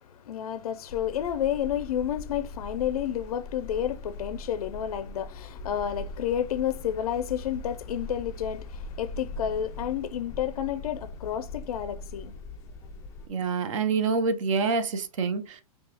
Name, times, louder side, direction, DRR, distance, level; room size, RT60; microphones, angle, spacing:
voice 1, 0.1-12.3, left 10 dB, 75° left, 0.4 m, -30 dB
sound 1, 0.9-13.3, left 2 dB, 15° left, 0.3 m, -41 dB
voice 2, 13.3-15.6, right 4 dB, 55° right, 0.7 m, -26 dB
4.6 x 2.3 x 2.8 m
hypercardioid pair, 150°, 19 cm